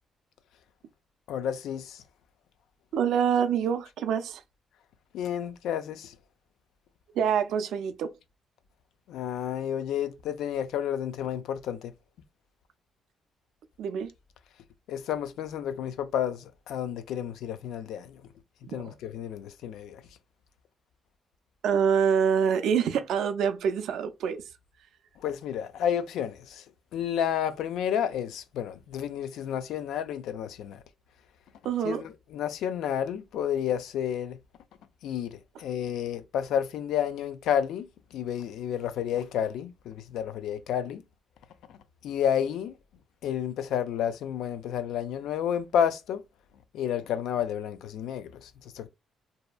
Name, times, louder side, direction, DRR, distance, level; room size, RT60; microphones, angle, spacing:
voice 1, 1.3-2.0 5.1-6.1 9.1-11.9 14.9-18.2 18.7-20.0 25.2-26.6 26.9-30.8 31.8-34.4 35.0-37.8 38.1-41.0 41.7-41.8 42.0-42.7 43.2-46.2 46.7-48.9, left 9 dB, 85° left, 0.3 m, -31 dB
voice 2, 2.9-4.4 7.1-8.1 13.8-14.1 18.6-18.9 21.6-24.4 31.6-32.0, right 7 dB, 80° right, 0.4 m, -26 dB
2.7 x 2.2 x 2.3 m
cardioid pair, 90°, 0 cm